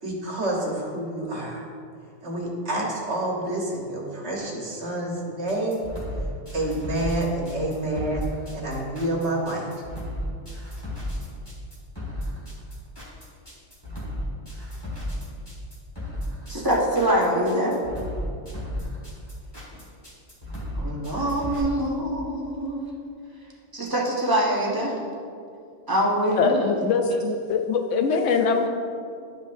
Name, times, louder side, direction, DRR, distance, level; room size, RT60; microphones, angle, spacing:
voice 1, 0.0-1.7 2.2-5.8 6.5-8.2 8.5-9.7, right 1 dB, 65° right, -2 dB, 1.4 m, -28 dB
sound 1, 5.5-21.6, left 1 dB, 20° left, 1.7 m, -34 dB
voice 2, 16.5-17.8 20.7-22.9 23.7-25.0 25.9-26.9, right 1 dB, 20° right, -4 dB, 1.1 m, -24 dB
voice 3, 26.4-28.7, left 5 dB, 85° left, 5 dB, 1.0 m, -23 dB
11.0 x 5.4 x 2.6 m, 2.4 s
omnidirectional pair, 1.2 m